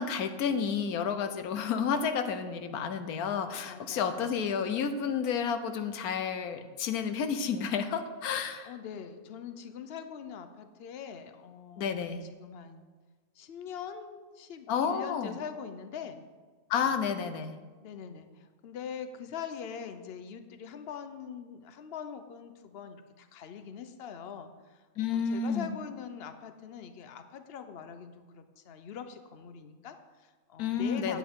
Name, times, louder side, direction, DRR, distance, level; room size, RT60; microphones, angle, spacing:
voice 1, 0.0-8.7 11.8-12.2 14.7-15.4 16.7-17.5 25.0-25.7 30.6-31.2, left 6 dB, 85° left, 9 dB, 1.2 m, -31 dB
voice 2, 3.7-4.4 8.6-12.9 13.4-16.2 16.8-17.0 17.8-24.8 25.1-31.2, left 7 dB, 55° left, 9 dB, 0.8 m, -43 dB
10.5 x 8.5 x 3.6 m, 1.4 s
omnidirectional pair, 1.5 m